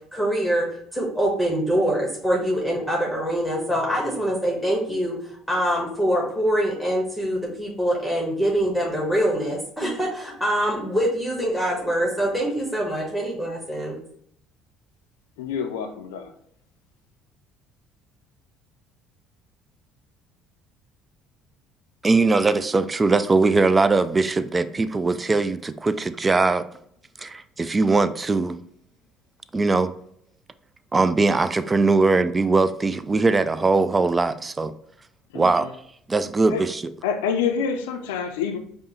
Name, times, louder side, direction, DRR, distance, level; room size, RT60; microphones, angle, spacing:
voice 1, 0.1-0.7 0.9-5.2 5.5-14.0, equal, ahead, -2 dB, 1.1 m, -24 dB
voice 2, 15.4-16.3 35.3-35.7 36.5-36.6 37.0-38.6, left 7 dB, 80° left, 7 dB, 0.4 m, -27 dB
voice 3, 22.0-26.6 27.2-28.6 29.5-29.9 30.9-34.7 35.3-35.7 36.1-36.8, right 3 dB, 25° right, 12 dB, 0.3 m, -20 dB
5.1 x 2.1 x 3.0 m, 0.68 s
hypercardioid pair, 65°, 0 cm